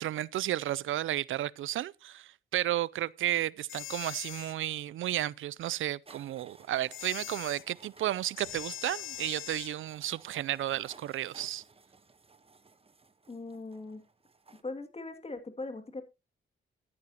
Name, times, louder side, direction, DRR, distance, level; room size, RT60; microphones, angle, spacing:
voice 1, 0.0-11.6, right 13 dB, 80° right, 0.5 m, -33 dB
sound 1, 3.7-4.5 6.9-7.6 8.4-9.7, left 13 dB, 85° left, 0.6 m, -42 dB
sound 2, 6.1-14.6, right 4 dB, 30° right, 1.1 m, -58 dB
voice 2, 13.3-14.0 14.6-16.0, left 3 dB, 30° left, 2.3 m, -40 dB
13.5 x 9.9 x 2.9 m
cardioid pair, 65°, 20 cm